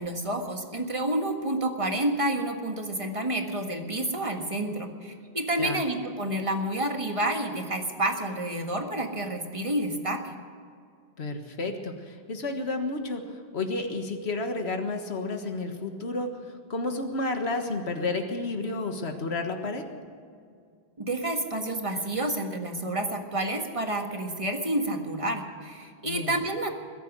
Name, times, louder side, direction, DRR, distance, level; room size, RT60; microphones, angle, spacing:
voice 1, 0.0-10.4 21.0-26.7, right 1 dB, 30° right, 4 dB, 1.7 m, -29 dB
voice 2, 11.2-19.8 26.0-26.4, left 2 dB, 80° left, 5 dB, 1.8 m, -31 dB
21.5 x 10.5 x 6.2 m, 2.2 s
omnidirectional pair, 1.1 m